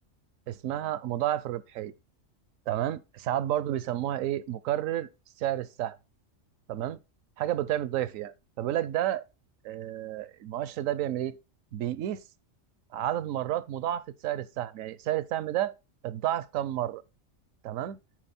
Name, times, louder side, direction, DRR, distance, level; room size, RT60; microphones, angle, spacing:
voice 1, 0.5-1.9 2.7-5.1 5.4-6.0 6.7-7.0 7.4-9.2 9.6-11.4 11.7-12.2 12.9-15.7 16.0-17.0 17.6-18.0, right 12 dB, 85° right, 1.0 m, -31 dB
8.9 x 4.8 x 4.2 m
omnidirectional pair, 1.4 m